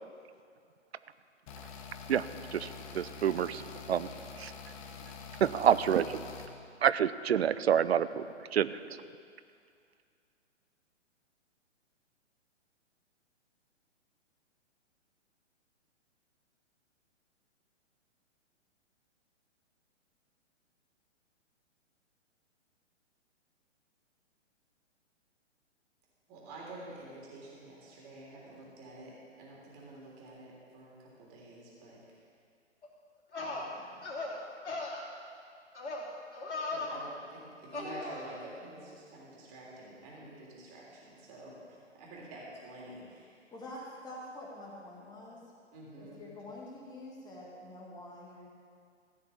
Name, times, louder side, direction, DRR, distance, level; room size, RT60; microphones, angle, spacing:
sound 1, 1.5-6.5, left 5 dB, 30° left, 0.9 m, -46 dB
voice 1, 2.5-4.1 4.4-4.5 5.4-6.1 6.8-8.3 8.5-8.7, right 9 dB, 60° right, 15 dB, 0.6 m, -27 dB
voice 2, 26.3-32.0 33.4-34.0 36.7-43.5 45.7-46.3, right 2 dB, 30° right, -4 dB, 3.4 m, -49 dB
sound 2, 32.8-32.9 33.3-33.6 34.0-34.4 34.6-35.0 35.7-36.1 36.3-37.0 37.7-38.3, left 3 dB, 65° left, 3.3 m, -37 dB
voice 3, 43.5-45.4 46.0-48.5, left 1 dB, 10° left, -3 dB, 2.0 m, -46 dB
15.5 x 5.9 x 8.4 m, 2.3 s
figure-of-eight pair, 125°, 36 cm